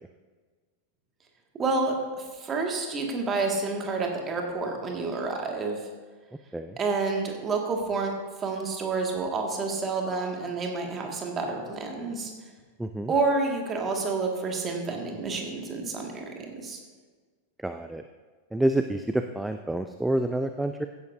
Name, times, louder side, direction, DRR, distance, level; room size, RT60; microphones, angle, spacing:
voice 1, 1.5-5.8 6.8-8.1 8.4-12.3 13.1-16.8, right 3 dB, 25° right, 1 dB, 2.1 m, -29 dB
voice 2, 12.8-13.1 17.6-18.0 18.5-20.9, right 1 dB, 5° right, 7 dB, 0.4 m, -28 dB
16.0 x 10.5 x 2.7 m, 1.4 s
figure-of-eight pair, 90°, 0 cm